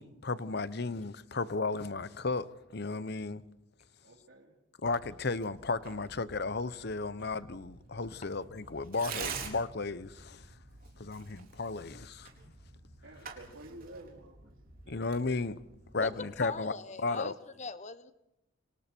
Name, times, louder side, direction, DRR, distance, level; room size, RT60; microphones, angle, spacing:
voice 1, 0.0-2.5 2.7-3.4 4.8-10.5 11.0-12.3 14.9-15.6 15.9-16.7 17.0-17.3, left 3 dB, 55° left, 0.9 m, -34 dB
voice 2, 4.0-4.5 13.0-14.5 14.9-15.0, right 1 dB, 75° right, 3.7 m, -50 dB
Tearing, 4.8-16.4, right 5 dB, 45° right, 4.6 m, -47 dB
voice 3, 16.4-18.1, left 4 dB, 35° left, 1.2 m, -40 dB
29.0 x 26.0 x 4.6 m
head